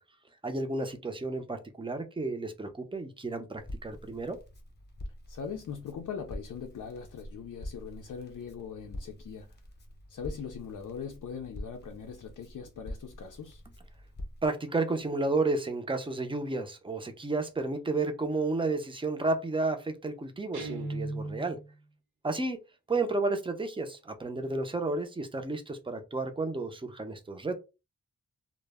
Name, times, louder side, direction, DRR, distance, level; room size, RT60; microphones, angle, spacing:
voice 1, 0.4-4.4 14.4-21.6 22.2-22.6 22.9-27.6, right 3 dB, 15° right, 0.5 m, -32 dB
Crackle, 3.6-14.5, left 1 dB, 30° left, 0.8 m, -45 dB
voice 2, 5.3-9.6 10.1-13.6, left 6 dB, 70° left, 0.5 m, -41 dB
Guitar, 20.5-21.7, right 2 dB, 65° right, 0.8 m, -36 dB
2.1 x 2.0 x 3.3 m
wide cardioid pair, 80°, 32 cm